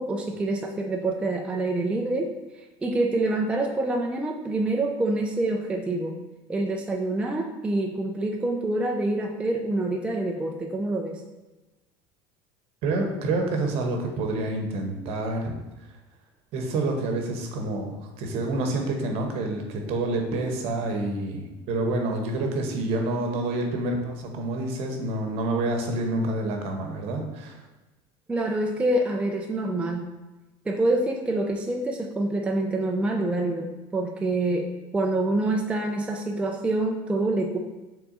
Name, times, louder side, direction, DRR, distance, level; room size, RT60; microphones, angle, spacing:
voice 1, 0.0-2.3 2.8-6.2 6.5-11.2 28.3-30.1 30.7-34.7 34.9-37.6, right 2 dB, 10° right, 2 dB, 0.3 m, -26 dB
voice 2, 12.8-15.5 16.5-27.6, right 2 dB, 60° right, 3 dB, 0.9 m, -28 dB
5.9 x 3.5 x 2.5 m, 1.1 s
supercardioid pair, 125°, 12 cm